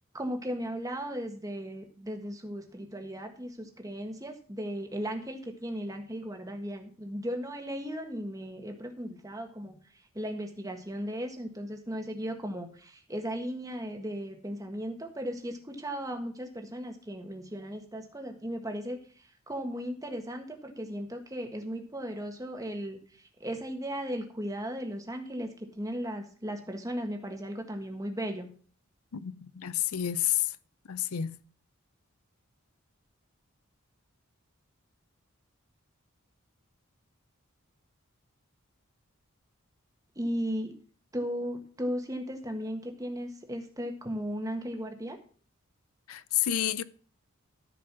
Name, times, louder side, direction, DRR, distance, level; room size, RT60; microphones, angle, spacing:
voice 1, 0.1-9.7 10.1-19.0 19.5-23.0 23.4-28.5 40.1-40.7 41.1-45.2, equal, 15° right, 1.6 m, -36 dB
voice 2, 29.1-30.5 30.9-31.4 46.1-46.8, left 11 dB, 85° left, 0.5 m, -29 dB
14.0 x 5.1 x 6.0 m
head